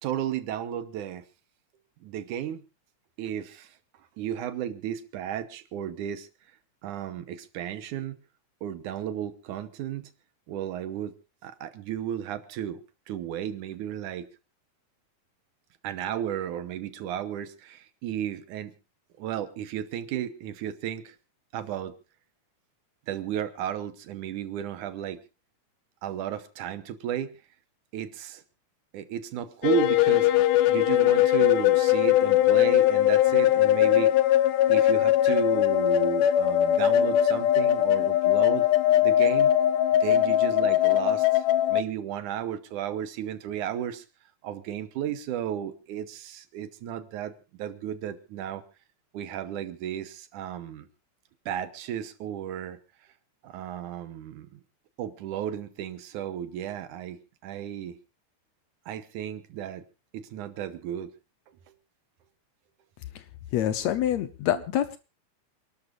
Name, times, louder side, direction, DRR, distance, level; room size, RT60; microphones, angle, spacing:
voice 1, 0.0-1.2 2.0-2.6 3.2-3.8 4.2-6.3 6.8-8.2 8.6-10.1 10.5-11.1 11.4-12.8 13.1-14.3 15.8-18.7 19.2-21.2 21.5-22.0 23.1-25.2 26.0-27.4 27.9-28.4 28.9-30.3 30.7-34.3 34.7-38.7 39.0-39.5 40.0-44.1 44.4-48.6 49.1-50.9 51.5-52.8 53.4-54.6 55.0-58.0 58.9-59.8 60.1-61.1 61.5-61.7 64.5-64.6, right 10 dB, 80° right, 11 dB, 2.5 m, -33 dB
sound 1, 29.6-41.8, left 12 dB, 85° left, 2.4 m, -21 dB
voice 2, 63.5-65.0, left 11 dB, 70° left, 12 dB, 2.0 m, -26 dB
28.0 x 12.5 x 2.5 m, 0.30 s
omnidirectional pair, 3.6 m